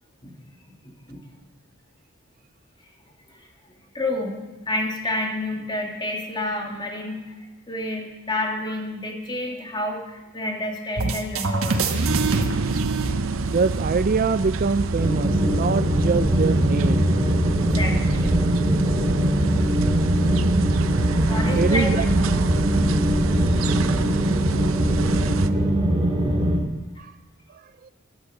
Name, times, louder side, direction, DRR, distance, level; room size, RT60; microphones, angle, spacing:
voice 1, 0.8-1.3 3.3-3.5 3.9-11.9 17.6-18.4 21.2-21.9 23.3-23.8 24.1-24.3 25.1-25.2, left 1 dB, 25° left, 1 dB, 2.7 m, -30 dB
sound 1, 11.0-13.9, right 3 dB, 90° right, 1.3 m, -25 dB
sound 2, 12.0-25.5, right 3 dB, 75° right, 0.7 m, -27 dB
voice 2, 13.5-17.1 21.6-22.1 27.0-27.1 27.8-27.9, right 4 dB, 45° right, 13 dB, 0.4 m, -24 dB
sound 3, 15.0-26.6, right 1 dB, 25° right, 3.0 m, -22 dB
14.0 x 11.5 x 7.8 m, 1.1 s
head